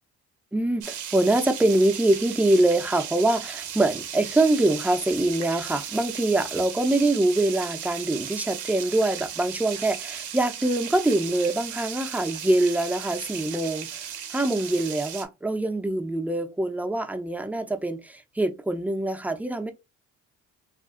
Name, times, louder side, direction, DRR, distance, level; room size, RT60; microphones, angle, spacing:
voice 1, 0.5-19.7, right 2 dB, 5° right, 0.6 m, -24 dB
Fish Frying, 0.8-15.3, right 9 dB, 85° right, 0.7 m, -36 dB
2.5 x 2.3 x 3.7 m
cardioid pair, 90°, 30 cm